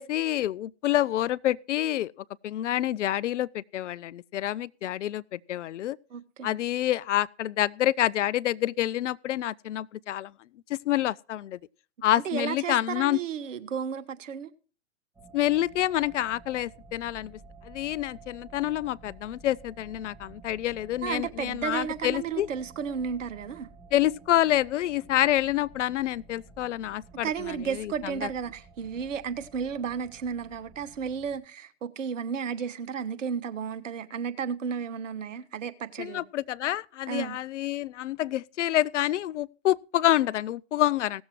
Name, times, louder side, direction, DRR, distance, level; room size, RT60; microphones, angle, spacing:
voice 1, 0.0-2.1 2.4-6.0 6.4-10.3 10.7-11.6 12.0-13.2 15.3-17.4 17.6-22.5 23.9-27.9 28.2-28.3 36.0-41.2, left 13 dB, 65° left, 0.5 m, -27 dB
voice 2, 6.1-6.6 12.2-14.5 21.0-23.7 27.2-36.2 37.1-37.4, right 7 dB, 70° right, 1.3 m, -33 dB
sound 1, 15.1-31.4, right 3 dB, 10° right, 2.5 m, -52 dB
17.0 x 7.2 x 4.5 m
hypercardioid pair, 120°, 39 cm